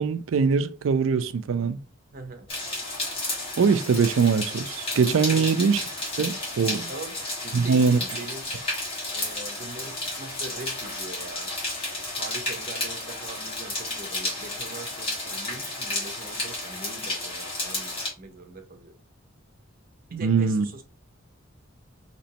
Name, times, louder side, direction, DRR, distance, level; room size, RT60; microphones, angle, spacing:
voice 1, 0.0-1.8 3.6-5.8 6.2-6.9 7.5-8.0 20.1-20.7, right 5 dB, 70° right, 0.4 m, -22 dB
voice 2, 2.1-2.5 5.3-5.6 6.7-8.5 9.1-11.6 12.1-18.9 20.1-20.8, right 2 dB, 45° right, 0.8 m, -42 dB
sound 1, 2.5-18.1, left 2 dB, 30° left, 1.9 m, -32 dB
4.2 x 2.9 x 2.8 m
head